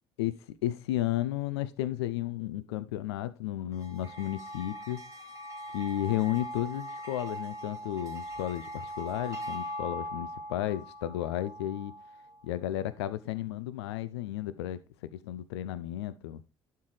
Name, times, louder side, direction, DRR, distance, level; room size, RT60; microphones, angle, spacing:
voice 1, 0.6-5.1 5.7-11.9 12.4-16.4, left 13 dB, 80° left, 0.5 m, -33 dB
sound 1, 3.7-12.4, equal, 25° right, 2.1 m, -41 dB
11.5 x 4.5 x 3.2 m
hypercardioid pair, 55°, 14 cm